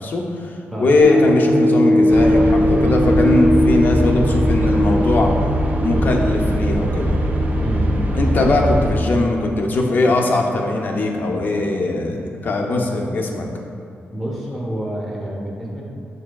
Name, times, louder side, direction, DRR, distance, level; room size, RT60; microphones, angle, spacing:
voice 1, 0.0-5.3 5.8-7.2 8.1-13.5, left 2 dB, 45° left, 1 dB, 0.4 m, -20 dB
sound 1, 1.0-9.4 9.9-10.0, equal, 80° right, 0.6 m, -20 dB
sound 2, 2.1-8.9, equal, 35° right, 0.4 m, -21 dB
voice 2, 7.6-8.6 14.1-15.8, equal, 5° right, -4 dB, 0.6 m, -28 dB
6.8 x 2.6 x 2.2 m, 2.5 s
wide cardioid pair, 160°, 4 cm